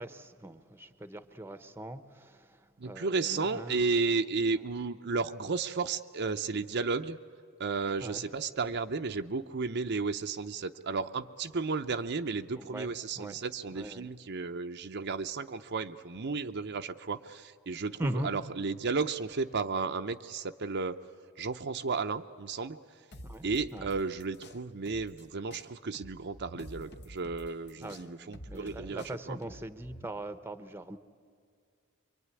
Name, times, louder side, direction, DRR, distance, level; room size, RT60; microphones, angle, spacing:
voice 1, 0.0-3.8 8.0-8.2 12.5-13.4 13.7-14.1 18.0-18.3 23.2-23.4 23.7-23.9 27.7-31.0, right 1 dB, 10° right, 0.9 m, -40 dB
voice 2, 2.8-7.2 7.6-21.0 21.4-22.8 23.4-29.4, right 4 dB, 55° right, 0.7 m, -33 dB
sound 1, 23.1-25.2 25.5-30.1, equal, 50° left, 1.1 m, -49 dB
25.5 x 24.0 x 9.7 m
head